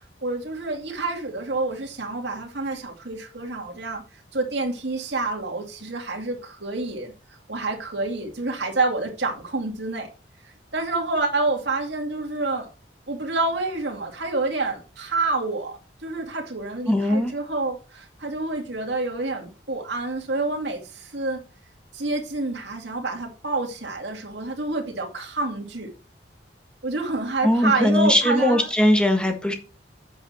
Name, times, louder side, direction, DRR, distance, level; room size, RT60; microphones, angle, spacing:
voice 1, 0.2-10.1 10.7-12.7 13.1-21.4 21.9-25.9 26.8-28.7, right 3 dB, 70° right, 2.4 m, -28 dB
voice 2, 16.9-17.3 27.4-29.5, left 1 dB, 5° left, 1.5 m, -20 dB
8.2 x 7.8 x 4.2 m
head